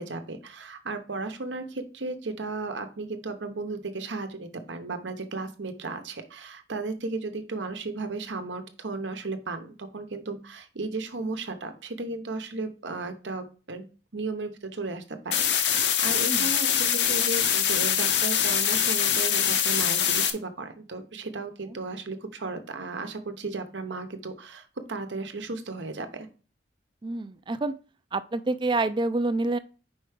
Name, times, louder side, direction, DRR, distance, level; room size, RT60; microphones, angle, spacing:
voice 1, 0.0-13.9 14.1-26.3, right 3 dB, 80° right, 8 dB, 1.0 m, -35 dB
sound 1, 15.3-20.3, left 8 dB, 70° left, 0.8 m, -24 dB
voice 2, 16.2-16.5 27.0-27.7 28.1-29.6, right 2 dB, 25° right, 13 dB, 0.4 m, -27 dB
5.2 x 4.6 x 5.0 m, 0.36 s
head